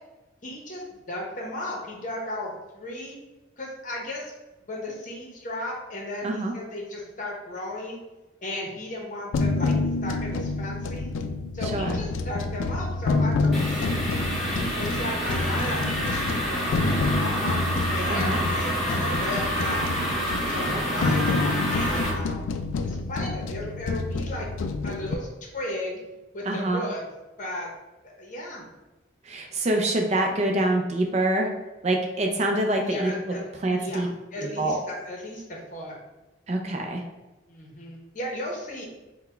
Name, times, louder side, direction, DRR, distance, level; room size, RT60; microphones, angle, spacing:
voice 1, 0.4-3.2 3.6-4.3 4.7-8.0 8.4-9.7 10.0-11.1 11.5-14.0 14.8-17.6 17.9-19.9 20.3-22.5 22.8-24.5 24.8-26.0 26.3-27.0 27.4-27.7 28.2-28.6 32.8-33.5 33.8-35.9 37.5-38.9, left 1 dB, 40° left, -2 dB, 0.8 m, -35 dB
sound 1, 9.3-25.2, left 3 dB, 80° left, 0.3 m, -28 dB
voice 2, 11.6-12.0 18.1-18.4 20.7-21.1 26.5-26.8 29.3-31.5 31.8-33.1 33.6-34.1 34.4-34.8 36.5-37.0, right 1 dB, 35° right, 2 dB, 0.4 m, -26 dB
sound 2, 13.5-22.1, equal, ahead, 1.0 m, -28 dB
4.0 x 2.2 x 4.3 m, 1.1 s
head